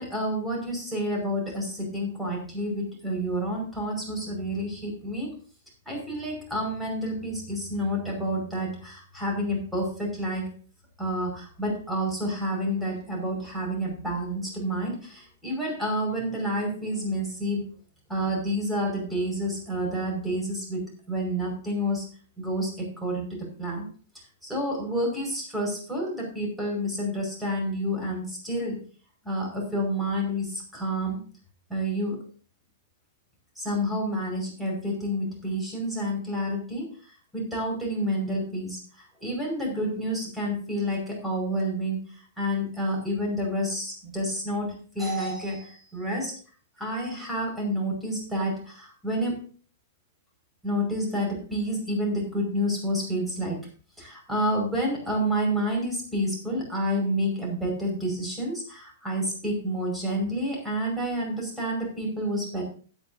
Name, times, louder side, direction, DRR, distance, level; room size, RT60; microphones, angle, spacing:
voice 1, 0.0-5.3 5.9-10.5 11.0-17.6 18.1-22.0 22.4-23.9 24.4-28.8 29.2-31.2 31.7-32.2 33.6-36.9 37.3-38.8 39.2-42.0 42.4-46.3 46.8-49.4 50.6-53.6 54.0-62.6, equal, 5° right, -1 dB, 5.3 m, -29 dB
16.5 x 9.2 x 2.7 m, 0.40 s
figure-of-eight pair, 105°, 0 cm